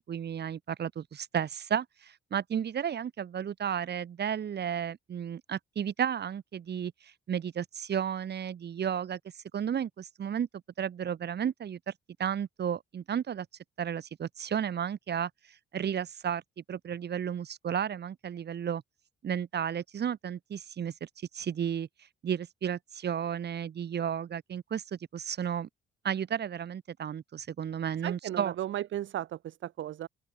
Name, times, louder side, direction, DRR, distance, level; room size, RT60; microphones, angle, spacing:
voice 1, 0.0-9.2 9.5-10.5 10.8-11.9 12.2-13.5 13.8-15.3 15.7-16.4 16.7-18.8 19.2-21.1 21.3-21.9 22.2-25.7 26.0-28.5, right 8 dB, 55° right, 5.1 m, -33 dB
voice 2, 28.0-30.1, right 12 dB, 75° right, 2.3 m, -35 dB
open air
cardioid pair, 90°, 20 cm